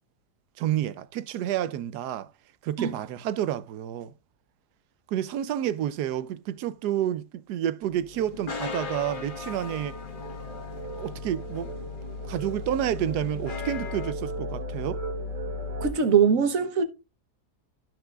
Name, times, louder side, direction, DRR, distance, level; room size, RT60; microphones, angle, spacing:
voice 1, 0.6-2.3 2.6-4.1 5.1-10.0 11.0-11.8 12.3-15.0, right 11 dB, 80° right, 1.2 m, -29 dB
sound 1, 7.8-15.9, left 1 dB, 30° right, 1.3 m, -36 dB
sound 2, 8.1-14.1, left 5 dB, 35° left, 1.4 m, -39 dB
voice 2, 15.8-16.8, right 6 dB, 55° right, 1.4 m, -21 dB
13.5 x 6.1 x 2.4 m
omnidirectional pair, 1.7 m